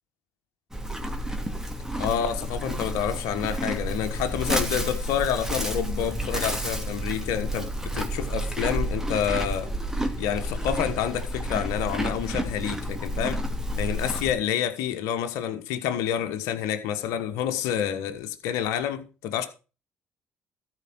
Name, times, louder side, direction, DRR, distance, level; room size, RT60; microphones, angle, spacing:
Livestock farm animals working animals, 0.7-14.3, right 1 dB, 10° right, 2.5 m, -30 dB
voice 1, 2.0-9.7 10.2-13.4 13.8-19.5, left 9 dB, 80° left, 1.3 m, -28 dB
13.5 x 4.9 x 6.1 m
supercardioid pair, 60°, 5 cm